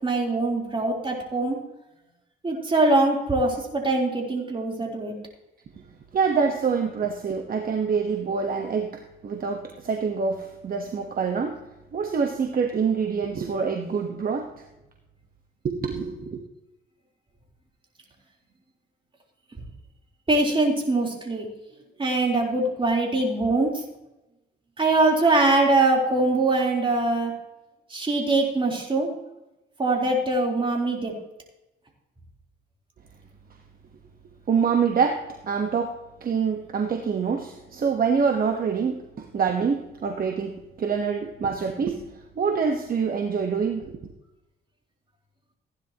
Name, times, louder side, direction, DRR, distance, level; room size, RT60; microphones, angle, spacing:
voice 1, 0.0-1.6 2.4-5.2 20.3-21.5 22.0-23.8 24.8-27.3 27.9-29.1 29.8-31.1, right 2 dB, 25° right, -1 dB, 3.8 m, -23 dB
voice 2, 6.1-11.6 11.9-14.5 15.6-16.4 34.5-39.0 39.3-42.1 42.4-43.9, right 6 dB, 45° right, 4 dB, 1.3 m, -26 dB
16.0 x 10.5 x 3.0 m, 0.97 s
cardioid pair, 90°, 20 cm